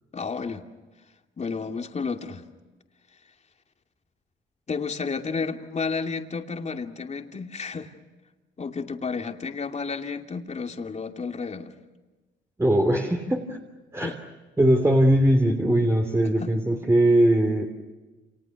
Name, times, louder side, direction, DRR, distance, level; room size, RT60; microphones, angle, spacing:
voice 1, 0.1-0.6 1.4-2.4 4.7-7.9 8.6-11.7 14.0-14.2 16.4-16.5, left 5 dB, 35° left, 4 dB, 2.7 m, -31 dB
voice 2, 12.6-13.6 13.9-14.2 14.6-17.7, right 1 dB, 15° right, 3 dB, 3.1 m, -20 dB
29.5 x 28.0 x 6.5 m, 1.2 s
cardioid pair, 90°, 20 cm